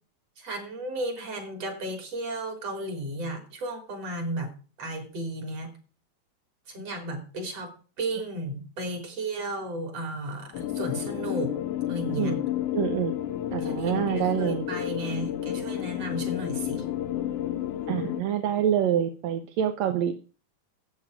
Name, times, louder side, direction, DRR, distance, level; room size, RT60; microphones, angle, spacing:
voice 1, 0.4-4.5 4.8-5.7 6.7-7.7 8.0-11.5 11.9-12.4 13.6-16.9, right 1 dB, 55° right, 4 dB, 4.5 m, -34 dB
sound 1, 10.5-18.2, left 12 dB, 75° left, 1.6 m, -31 dB
voice 2, 12.7-13.1 13.5-14.6 17.9-20.1, right 10 dB, 75° right, 7 dB, 2.0 m, -26 dB
14.5 x 8.7 x 5.0 m, 0.37 s
omnidirectional pair, 3.4 m